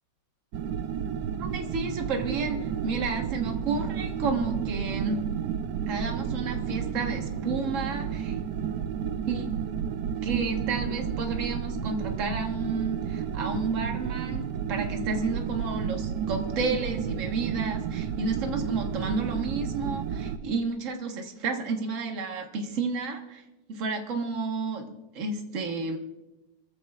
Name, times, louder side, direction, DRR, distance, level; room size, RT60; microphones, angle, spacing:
sound 1, 0.5-20.4, right 8 dB, 65° right, 1.3 m, -31 dB
voice 1, 1.4-5.2 5.9-8.3 9.3-9.5 10.2-23.4 23.7-26.0, right 4 dB, 40° right, 3 dB, 1.6 m, -31 dB
26.0 x 14.5 x 2.4 m, 1.0 s
omnidirectional pair, 2.2 m